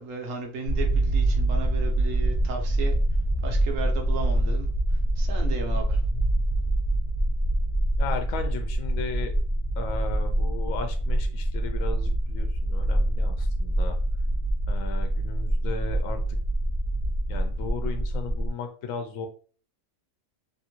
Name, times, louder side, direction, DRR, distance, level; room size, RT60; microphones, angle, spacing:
voice 1, 0.0-2.9 3.4-6.0, right 4 dB, 75° right, 3 dB, 1.1 m, -35 dB
sound 1, 0.7-18.5, right 1 dB, 45° left, 0.3 m, -25 dB
voice 2, 8.0-9.3 9.8-14.0 14.7-16.2 17.3-19.3, left 5 dB, 75° left, 6 dB, 0.9 m, -36 dB
2.9 x 2.5 x 2.8 m, 0.42 s
omnidirectional pair, 1.4 m